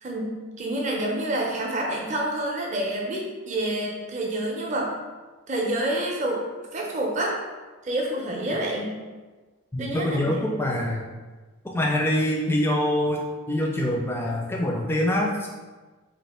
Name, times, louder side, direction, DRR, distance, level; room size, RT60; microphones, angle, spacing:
voice 1, 0.0-4.9 5.5-6.4 6.7-7.4 7.8-9.0 9.8-10.3, right 1 dB, 35° right, -1 dB, 0.6 m, -28 dB
voice 2, 9.7-11.0 11.6-13.2 13.5-15.5, left 1 dB, 10° left, -1 dB, 0.4 m, -25 dB
3.2 x 2.5 x 4.2 m, 1.3 s
head